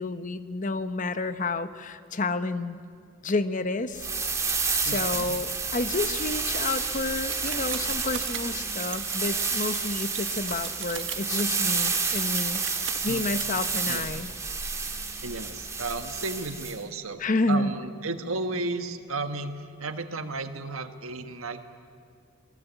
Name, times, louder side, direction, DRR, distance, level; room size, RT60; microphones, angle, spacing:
voice 1, 0.0-2.8 3.2-4.1 4.8-12.6 13.0-14.3 17.2-17.7, left 2 dB, 40° left, 11 dB, 0.9 m, -30 dB
sound 1, 3.9-16.8, right 4 dB, 15° right, 1.8 m, -30 dB
voice 2, 4.8-5.4 13.1-13.2 13.9-14.1 15.2-21.6, right 3 dB, 85° right, 8 dB, 1.4 m, -34 dB
sound 2, 7.1-13.4, right 10 dB, 60° right, 1.3 m, -39 dB
29.0 x 20.5 x 8.2 m, 2.3 s
head